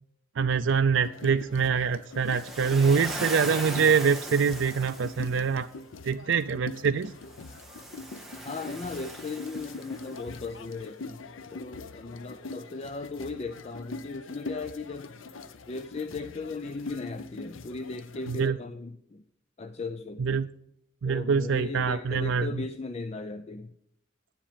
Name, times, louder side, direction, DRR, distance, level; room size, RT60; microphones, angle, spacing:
voice 1, 0.4-5.7 6.0-7.1 18.3-18.6 20.2-20.5 21.0-22.6, right 6 dB, 75° right, 8 dB, 0.4 m, -25 dB
sound 1, 1.0-18.5, left 3 dB, 90° left, 0.7 m, -43 dB
Waves surf, 2.3-5.5 7.3-10.3, right 1 dB, ahead, 1.5 m, -39 dB
voice 2, 8.4-11.2 11.5-15.1 15.7-19.2 19.6-20.4 21.0-23.8, left 3 dB, 35° left, 10 dB, 0.4 m, -37 dB
10.0 x 8.4 x 5.1 m, 0.77 s
head